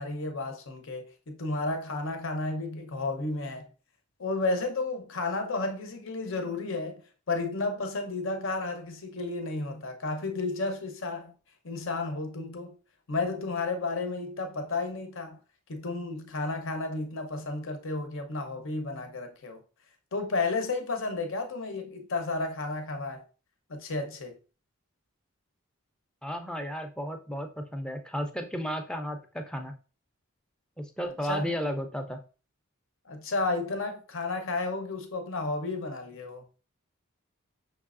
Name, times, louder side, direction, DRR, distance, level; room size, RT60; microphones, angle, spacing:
voice 1, 0.0-3.6 4.2-7.0 7.3-11.3 11.6-12.7 13.1-15.4 15.7-19.6 20.1-23.2 23.7-24.3 31.3-31.5 33.1-36.4, left 3 dB, 65° left, 0.8 m, -32 dB
voice 2, 26.2-29.7 30.8-32.2, equal, 5° left, 0.5 m, -33 dB
5.5 x 3.2 x 2.4 m
head